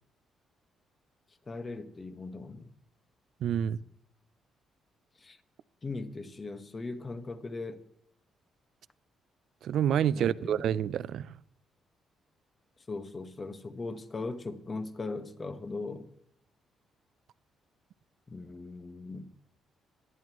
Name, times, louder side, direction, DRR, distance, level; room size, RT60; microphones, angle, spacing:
voice 1, 1.5-2.7 5.2-5.4 5.8-7.8 10.1-10.7 12.9-16.1 18.3-19.3, left 3 dB, 30° left, 1.4 m, -39 dB
voice 2, 3.4-3.8 9.6-11.3, right 9 dB, 70° right, 0.5 m, -28 dB
24.5 x 11.0 x 3.1 m
cardioid pair, 90°, 0 cm